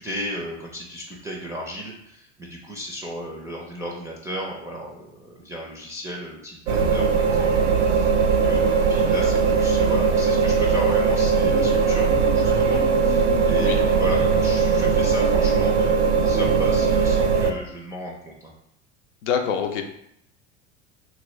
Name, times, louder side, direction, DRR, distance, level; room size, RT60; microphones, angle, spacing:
voice 1, 0.0-7.5 7.8-18.5, equal, 10° right, -2 dB, 0.4 m, -35 dB
sound 1, 6.7-17.5, right 5 dB, 85° right, 0.5 m, -20 dB
voice 2, 19.2-19.8, left 7 dB, 70° left, 5 dB, 0.6 m, -25 dB
2.9 x 2.7 x 3.0 m, 0.76 s
hypercardioid pair, 85°, 37 cm